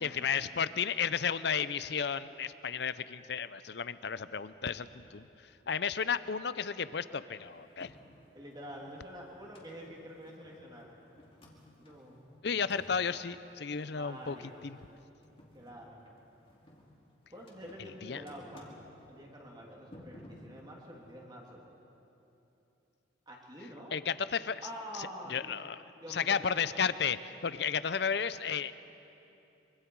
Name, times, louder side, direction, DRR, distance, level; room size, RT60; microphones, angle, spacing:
voice 1, 0.0-5.3 5.7-7.9 12.4-14.4 14.6-14.8 18.0-18.2 23.9-24.6 25.3-25.8 26.1-28.7, left 6 dB, 55° left, 15 dB, 0.6 m, -33 dB
sound 1, 7.4-21.0, left 1 dB, 30° left, 2.3 m, -58 dB
voice 2, 8.3-10.9 11.7-12.3 13.9-14.7 15.5-16.0 17.3-18.7 19.1-21.6 23.3-24.0 24.6-25.7 26.0-26.8, equal, 20° right, -2 dB, 2.9 m, -47 dB
24.5 x 24.0 x 4.7 m, 2.9 s
head